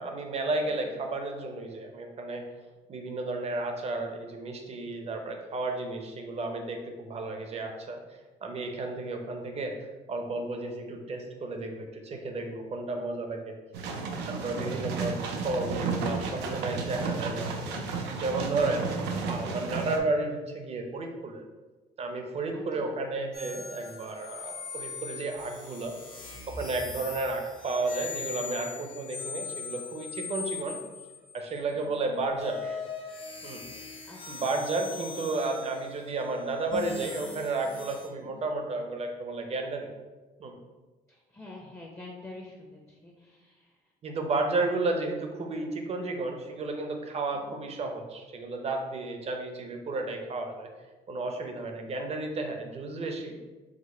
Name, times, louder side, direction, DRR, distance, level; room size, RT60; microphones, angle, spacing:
voice 1, 0.0-2.4 2.9-8.0 8.4-13.6 14.3-17.5 18.2-18.9 19.3-21.4 22.0-25.9 26.5-30.8 31.3-32.8 33.4-33.6 34.3-39.9 40.4-40.6 44.0-50.7 51.1-53.4, right 2 dB, 40° right, 4 dB, 0.7 m, -32 dB
voice 2, 0.6-1.0 22.5-22.9 26.8-27.2 31.7-32.0 34.0-34.5 38.2-38.5 41.1-43.8 47.3-47.6, left 2 dB, 15° left, -1 dB, 0.7 m, -48 dB
sound 1, 13.7-20.0, right 4 dB, 90° right, 0.6 m, -32 dB
sound 2, 23.3-31.6 32.3-38.1, left 5 dB, 50° left, 1.3 m, -41 dB
5.0 x 2.1 x 4.2 m, 1.2 s
cardioid pair, 110°, 17 cm